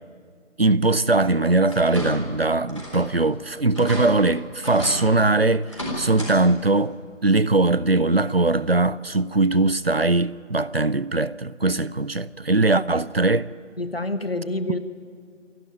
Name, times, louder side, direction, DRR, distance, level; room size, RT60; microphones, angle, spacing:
voice 1, 0.6-7.0 7.2-13.5, right 2 dB, 55° right, 0.5 m, -21 dB
sound 1, 1.7-2.4 2.7-3.1 3.4-3.5 3.7-4.1 4.6-5.0 5.6-6.3 6.7-6.8 8.2-8.3 8.8-8.9, left 1 dB, 25° left, 4.0 m, -33 dB
voice 2, 13.8-14.8, left 2 dB, 50° left, 1.4 m, -27 dB
27.0 x 12.0 x 9.1 m
figure-of-eight pair, 180°, 37 cm